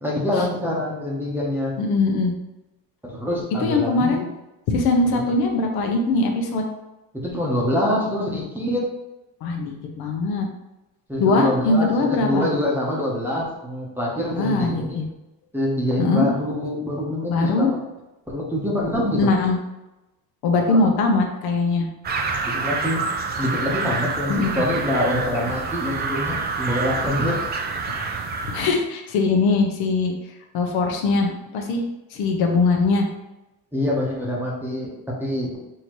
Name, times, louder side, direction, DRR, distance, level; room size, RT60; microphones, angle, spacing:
voice 1, 0.0-1.7 3.0-4.2 5.1-5.2 7.1-8.9 11.1-15.0 15.5-17.7 18.3-19.3 20.7-20.9 22.4-23.0 23.4-27.4 33.7-35.6, left 1 dB, 5° right, -4 dB, 0.9 m, -25 dB
voice 2, 1.8-2.3 3.6-4.2 4.7-6.6 9.4-10.5 11.2-12.5 14.4-15.0 16.0-16.3 17.3-17.7 19.2-19.6 20.4-21.9 24.3-24.6 28.5-30.1 30.5-31.8 32.1-33.1, left 3 dB, 70° left, 2 dB, 0.9 m, -21 dB
sound 1, 22.0-28.7, right 4 dB, 25° right, 0.3 m, -27 dB
6.3 x 2.8 x 3.0 m, 0.99 s
cardioid pair, 160°, 40 cm